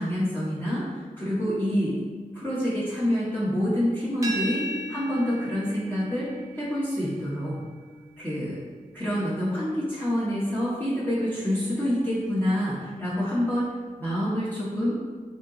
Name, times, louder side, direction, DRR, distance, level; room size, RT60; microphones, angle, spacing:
voice 1, 0.0-1.9 2.3-6.3 6.5-7.6 8.2-8.6 8.9-13.7 14.0-15.0, equal, 15° left, -10 dB, 1.2 m, -27 dB
sound 1, 4.2-10.0, right 1 dB, 20° right, 1.0 m, -38 dB
4.4 x 2.9 x 3.9 m, 1.5 s
wide cardioid pair, 80°, 15 cm